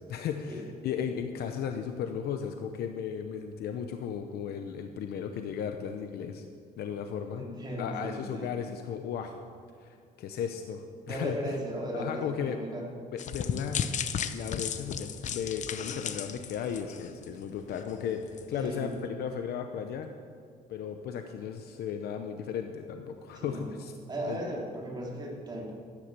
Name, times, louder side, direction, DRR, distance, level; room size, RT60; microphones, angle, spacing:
voice 1, 0.0-6.4 6.8-7.5 7.8-9.4 9.8-11.6 11.9-12.6 13.1-20.1 20.7-23.9 24.3-24.6, left 7 dB, 75° left, 6 dB, 0.8 m, -35 dB
voice 2, 7.4-8.5 11.1-12.8 18.5-18.9 23.3-23.7 24.1-25.7, right 1 dB, 25° right, -2 dB, 3.1 m, -36 dB
sound 1, 13.2-17.4 17.8-17.9 18.4-18.5, left 7 dB, 50° left, 0.7 m, -34 dB
13.0 x 10.0 x 6.8 m, 2.1 s
cardioid pair, 130°, 16 cm